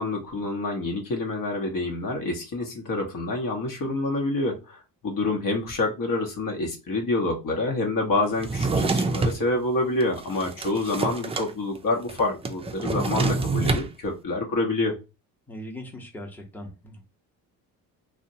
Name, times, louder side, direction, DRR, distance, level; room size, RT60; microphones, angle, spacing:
voice 1, 0.0-14.9, left 2 dB, 55° left, 2 dB, 0.9 m, -27 dB
Drawer open or close, 8.4-9.4 10.0-11.5 11.8-11.9 12.1-13.9, right 3 dB, 15° right, 0.3 m, -26 dB
voice 2, 15.5-17.0, left 1 dB, 5° left, 0 dB, 0.8 m, -39 dB
2.7 x 2.1 x 2.6 m, 0.29 s
supercardioid pair, 70°, 39 cm